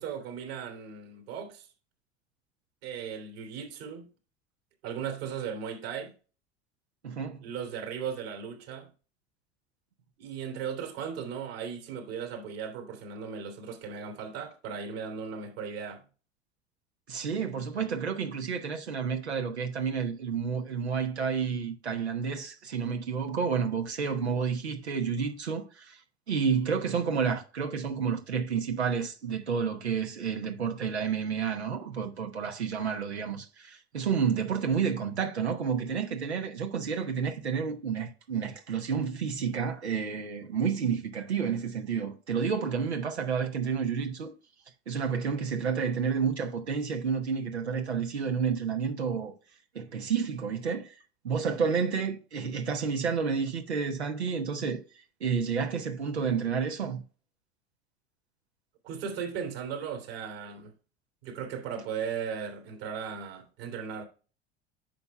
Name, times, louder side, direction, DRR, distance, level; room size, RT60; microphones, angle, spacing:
voice 1, 0.0-1.7 2.8-4.0 4.8-6.1 7.4-8.9 10.2-16.0 58.8-60.7 61.2-64.0, right 7 dB, 65° right, 3.3 m, -37 dB
voice 2, 7.0-7.5 17.1-26.0 26.3-44.3 44.9-49.3 49.7-57.0, right 6 dB, 85° right, 1.1 m, -30 dB
10.5 x 5.9 x 2.4 m
figure-of-eight pair, 80°, 32 cm